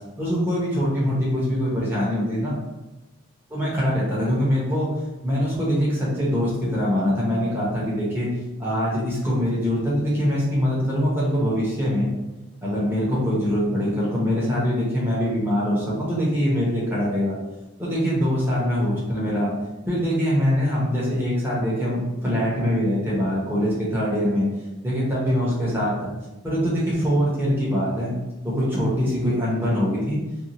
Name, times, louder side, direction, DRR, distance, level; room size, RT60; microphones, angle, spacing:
voice 1, 0.2-2.5 3.5-4.9 5.2-8.3 8.6-12.1 12.6-17.3 17.8-19.5 19.8-24.4 24.8-26.1 26.4-28.1 28.4-30.2, equal, 10° right, -7 dB, 0.8 m, -23 dB
2.6 x 2.3 x 2.8 m, 1.0 s
head